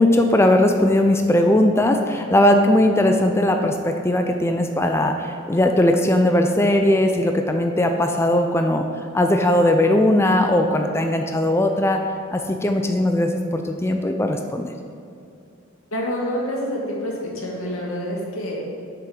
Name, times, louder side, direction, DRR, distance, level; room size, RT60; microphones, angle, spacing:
voice 1, 0.0-12.0 12.3-14.7, left 1 dB, 10° left, 4 dB, 0.4 m, -19 dB
voice 2, 15.9-18.6, equal, 85° left, -3 dB, 2.3 m, -27 dB
8.6 x 6.7 x 6.1 m, 2.5 s
head